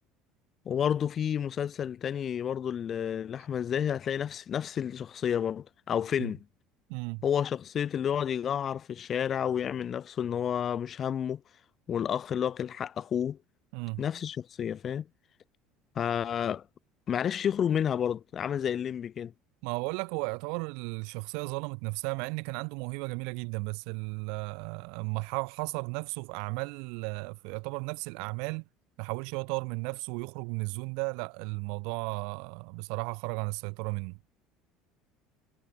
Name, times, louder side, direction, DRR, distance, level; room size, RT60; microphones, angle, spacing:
voice 1, 0.6-6.4 7.2-11.4 11.9-13.4 14.0-15.1 15.9-16.6 17.1-19.3, left 9 dB, 40° left, 6.4 m, -30 dB
voice 2, 6.9-7.2 13.7-14.0 19.6-28.6 29.0-34.2, right 35 dB, 60° right, 2.7 m, -34 dB
figure-of-eight pair, 65°, 0 cm